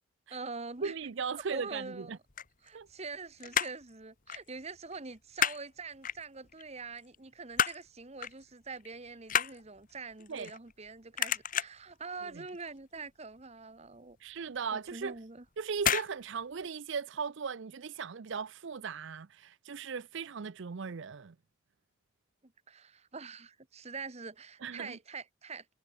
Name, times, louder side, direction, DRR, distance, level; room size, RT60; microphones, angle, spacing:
voice 1, 0.3-0.9 1.3-2.2 2.6-14.2 14.7-15.4 22.4-25.6, right 4 dB, 30° right, 1.2 m, -44 dB
voice 2, 0.8-2.2 2.7-2.9 10.3-10.5 12.2-12.4 14.2-15.2 15.6-21.3 24.6-25.0, right 6 dB, 55° right, 0.5 m, -38 dB
sound 1, 2.1-3.1 3.4-3.9 4.3-4.5 4.8-5.6 6.0-6.6 7.0-7.9 8.2-8.4 8.7-10.9 11.2-11.9 12.3-12.7 12.9-13.0 13.4-13.5 13.9-14.0 14.9-15.2 15.8-16.1 16.4-16.5, left 8 dB, 40° left, 1.6 m, -31 dB
head